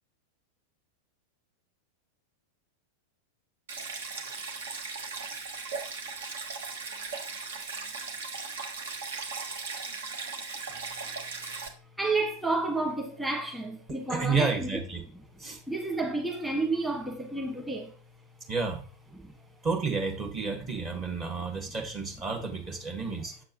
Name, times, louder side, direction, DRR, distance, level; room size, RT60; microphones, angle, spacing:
Stream, 3.7-11.7, right 4 dB, 60° right, 1.3 m, -37 dB
voice 1, 12.0-14.8 15.7-17.9 19.2-19.3, right 2 dB, 5° right, 1.5 m, -30 dB
voice 2, 14.1-15.0 15.4-15.6 18.5-18.8 19.6-23.3, right 4 dB, 25° right, 1.5 m, -31 dB
7.5 x 7.1 x 2.9 m
figure-of-eight pair, 90°, 0 cm